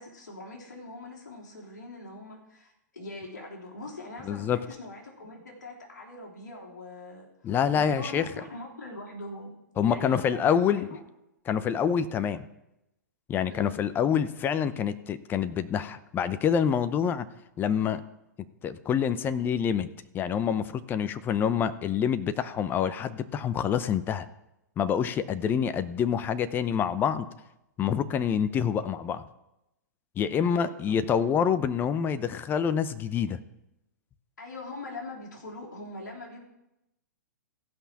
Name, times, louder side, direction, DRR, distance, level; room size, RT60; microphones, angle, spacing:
voice 1, 0.0-9.5 9.8-11.0 13.5-13.8 30.4-30.9 34.4-36.4, left 2 dB, 75° left, -1 dB, 3.3 m, -42 dB
voice 2, 4.2-4.6 7.4-8.2 9.8-10.9 11.5-12.5 13.3-17.3 17.6-18.0 18.6-19.9 20.1-24.3 24.8-27.3 27.8-29.2 30.2-33.4, left 8 dB, 20° left, 13 dB, 0.7 m, -26 dB
15.5 x 5.7 x 6.0 m, 0.90 s
figure-of-eight pair, 115°, 10 cm